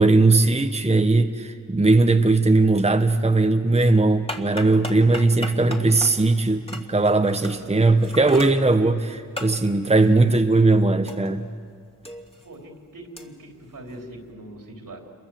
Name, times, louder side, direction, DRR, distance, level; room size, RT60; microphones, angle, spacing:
voice 1, 0.0-11.5, right 3 dB, 20° right, 7 dB, 1.1 m, -19 dB
sound 1, 4.1-11.6 11.9-14.3, left 1 dB, 15° left, 2.6 m, -38 dB
voice 2, 7.4-7.8 12.4-15.0, right 1 dB, 75° right, 2 dB, 3.7 m, -41 dB
27.0 x 23.0 x 7.7 m, 2.2 s
cardioid pair, 45°, 33 cm